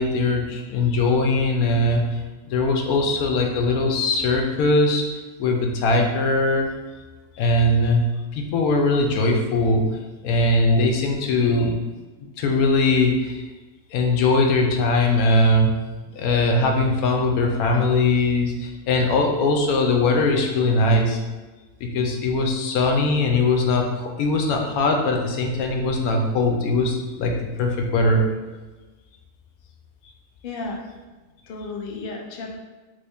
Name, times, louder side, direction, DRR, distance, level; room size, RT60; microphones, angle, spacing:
voice 1, 0.0-2.2 2.5-5.1 5.4-6.7 7.4-8.1 8.3-9.8 10.2-11.7 12.4-13.4 13.9-15.7 16.1-21.2 21.8-28.2, left 2 dB, 85° left, 2 dB, 1.1 m, -20 dB
voice 2, 11.4-11.7 12.6-12.7 30.4-30.8 31.5-32.6, left 3 dB, 60° left, 0 dB, 0.6 m, -33 dB
3.4 x 2.7 x 3.4 m, 1.2 s
omnidirectional pair, 1.5 m